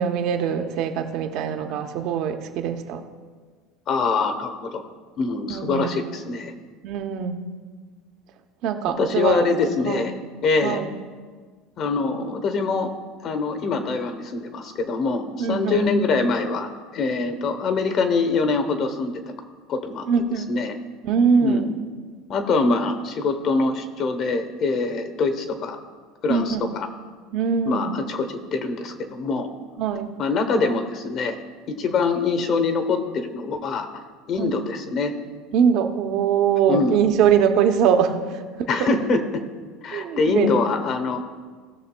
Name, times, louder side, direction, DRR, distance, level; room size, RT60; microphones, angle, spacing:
voice 1, 0.0-3.0 5.5-6.0 6.8-7.4 8.6-10.0 10.6-10.9 15.4-15.8 20.1-20.5 21.0-21.7 26.3-26.7 27.3-27.9 29.8-30.1 34.4-34.5 35.5-38.4 39.9-40.5, right 7 dB, 50° right, 7 dB, 0.7 m, -22 dB
voice 2, 3.9-4.8 5.2-6.5 9.0-10.8 11.8-12.9 13.2-19.1 19.7-20.1 20.3-20.7 21.4-21.7 22.3-25.8 26.2-26.9 27.6-29.5 30.2-31.4 31.7-33.9 34.3-35.1 36.7-37.0 38.7-39.4 39.8-41.2, left 4 dB, 40° left, 8 dB, 0.9 m, -24 dB
16.5 x 6.8 x 2.2 m, 1.5 s
cardioid pair, 155°, 0 cm